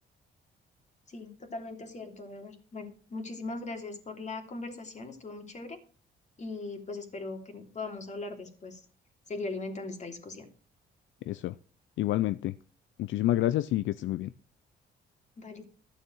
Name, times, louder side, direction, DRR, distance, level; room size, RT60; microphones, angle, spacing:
voice 1, 1.1-5.8 6.4-8.8 9.3-10.4 15.4-15.6, left 3 dB, 35° left, 4 dB, 3.0 m, -39 dB
voice 2, 12.0-12.5 13.0-14.3, left 14 dB, 75° left, 15 dB, 0.5 m, -28 dB
13.0 x 6.7 x 6.3 m, 0.39 s
cardioid pair, 90°, 20 cm